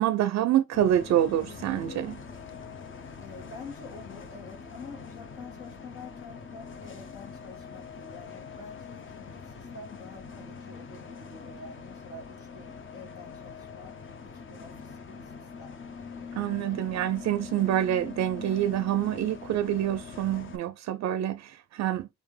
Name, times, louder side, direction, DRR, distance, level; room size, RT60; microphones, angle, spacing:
voice 1, 0.0-2.2 16.4-22.1, right 11 dB, 60° right, 0.4 m, -27 dB
Bus, 0.7-20.6, left 5 dB, 40° left, 0.8 m, -43 dB
voice 2, 3.2-13.9 14.2-15.8, left 4 dB, 75° left, 2.1 m, -47 dB
4.1 x 3.5 x 3.1 m
cardioid pair, 90°, 30 cm